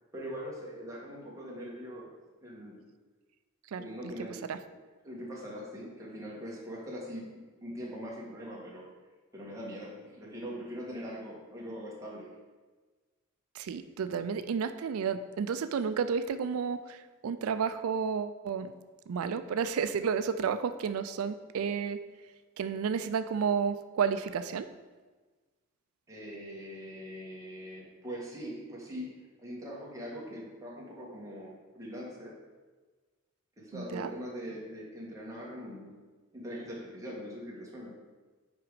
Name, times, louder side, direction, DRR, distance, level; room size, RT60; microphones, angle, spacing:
voice 1, 0.0-2.1 2.4-2.9 3.8-4.6 5.0-8.9 9.3-12.3 26.1-32.3 33.6-36.0 36.3-38.0, equal, 15° right, -5 dB, 1.6 m, -42 dB
voice 2, 3.7-4.1 4.5-4.6 13.5-18.7 19.1-22.0 22.6-24.7 33.7-34.1, right 6 dB, 85° right, 11 dB, 0.4 m, -31 dB
6.0 x 5.0 x 4.9 m, 1.3 s
head